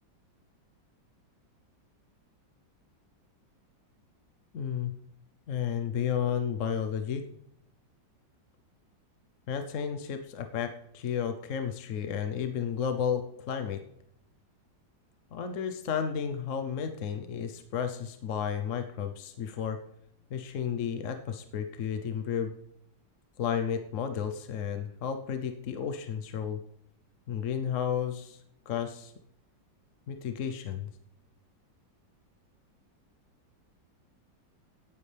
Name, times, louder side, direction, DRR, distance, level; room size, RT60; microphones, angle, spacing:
voice 1, 4.5-4.9 5.5-7.2 9.5-13.8 15.3-19.8 20.3-22.5 23.4-26.6 27.3-28.4 28.7-29.1 30.1-30.9, left 8 dB, 55° left, 7 dB, 0.9 m, -32 dB
17.5 x 9.6 x 3.4 m, 0.75 s
omnidirectional pair, 2.0 m